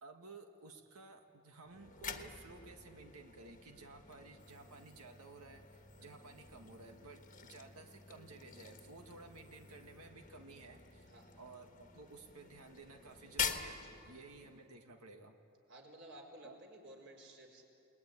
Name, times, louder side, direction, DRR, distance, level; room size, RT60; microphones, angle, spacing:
voice 1, 0.0-11.1 11.4-15.4 16.4-16.5, right 3 dB, 90° right, 5 dB, 1.8 m, -55 dB
sound 1, 1.6-14.7, left 7 dB, 35° left, 1.4 m, -47 dB
voice 2, 11.0-11.4 13.8-14.0 15.7-17.6, right 1 dB, 55° right, 1 dB, 4.8 m, -55 dB
29.5 x 20.5 x 9.7 m, 2.7 s
head